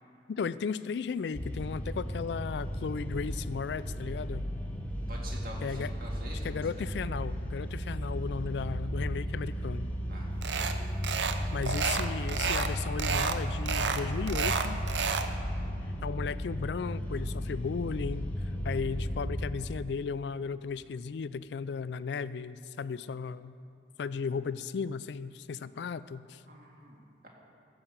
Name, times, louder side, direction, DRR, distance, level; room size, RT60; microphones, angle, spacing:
voice 1, 0.3-4.5 5.6-5.9 6.4-9.9 11.5-14.8 16.0-18.3 18.6-23.5 24.0-26.4, left 5 dB, 70° left, 16 dB, 0.3 m, -35 dB
sound 1, 1.3-19.2, equal, 10° left, 0.8 m, -35 dB
voice 2, 5.1-6.8 9.3-9.5 10.1-10.3 26.5-27.3, right 1 dB, 50° right, -2 dB, 2.1 m, -46 dB
sound 2, 6.6-19.5, left 4 dB, 25° right, 3.6 m, -49 dB
sound 3, 10.4-10.8 11.0-11.4 11.6-12.7 13.0-13.4 13.7-15.3, right 6 dB, 85° right, 0.7 m, -30 dB
15.0 x 5.9 x 7.3 m, 2.5 s
head